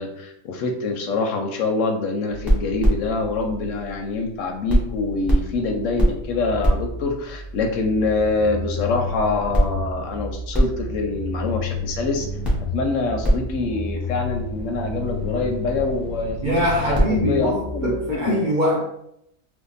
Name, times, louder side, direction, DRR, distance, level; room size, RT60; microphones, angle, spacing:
voice 1, 0.0-12.3 12.7-18.4, left 3 dB, 70° left, 4 dB, 0.8 m, -25 dB
sound 1, 2.3-4.4 4.7-18.2, equal, ahead, 0.8 m, -26 dB
voice 2, 16.4-18.8, equal, 65° right, -3 dB, 0.4 m, -23 dB
2.5 x 2.5 x 3.9 m, 0.75 s
omnidirectional pair, 1.6 m